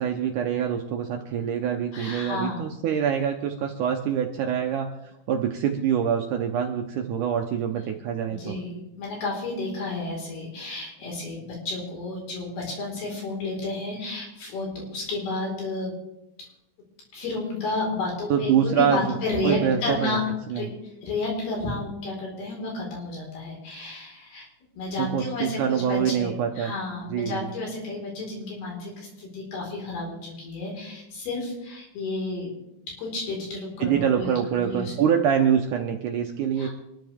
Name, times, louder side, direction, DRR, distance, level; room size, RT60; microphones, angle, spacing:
voice 1, 0.0-4.9 5.3-8.5 18.3-19.0 19.4-20.2 20.5-20.7 25.0-26.7 27.1-27.5 33.8-36.7, right 8 dB, 70° right, 3 dB, 1.9 m, -25 dB
voice 2, 1.9-2.7 8.3-15.9 17.1-20.2 20.6-20.7 21.0-24.5 24.8-32.5 33.0-34.9 36.6-36.7, left 2 dB, 80° left, -1 dB, 6.6 m, -31 dB
25.5 x 13.0 x 3.5 m, 0.89 s
omnidirectional pair, 4.5 m